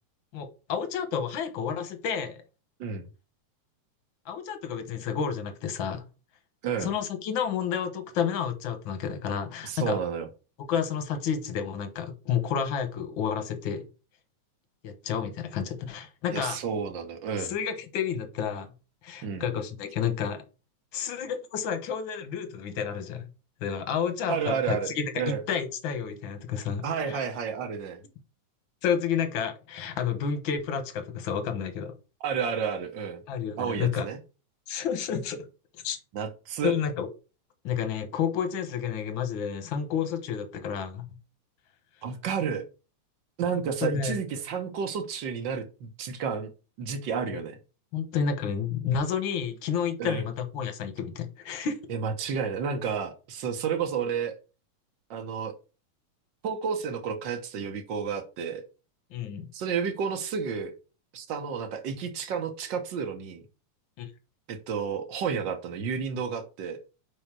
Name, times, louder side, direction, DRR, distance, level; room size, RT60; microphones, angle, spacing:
voice 1, 0.3-2.4 4.3-6.0 6.8-10.0 10.7-13.8 14.8-16.6 17.4-18.7 19.0-20.4 20.9-23.2 23.6-27.2 28.8-31.9 33.3-34.0 34.7-35.5 35.8-36.0 36.6-37.1 37.6-41.1 43.5-44.2 47.3-47.4 47.9-51.8 59.1-59.5 64.0-64.1, left 7 dB, 60° left, 8 dB, 1.3 m, -30 dB
voice 2, 9.6-10.3 16.3-17.5 19.2-19.4 24.3-25.4 26.8-28.0 32.2-33.2 33.6-34.2 36.1-36.7 42.0-42.6 43.4-46.5 46.8-47.6 50.0-50.2 51.9-54.4 55.1-55.5 56.4-58.6 59.5-60.7 61.1-63.4 64.5-66.8, right 6 dB, 75° right, 6 dB, 1.0 m, -31 dB
5.5 x 4.9 x 6.0 m, 0.32 s
omnidirectional pair, 3.5 m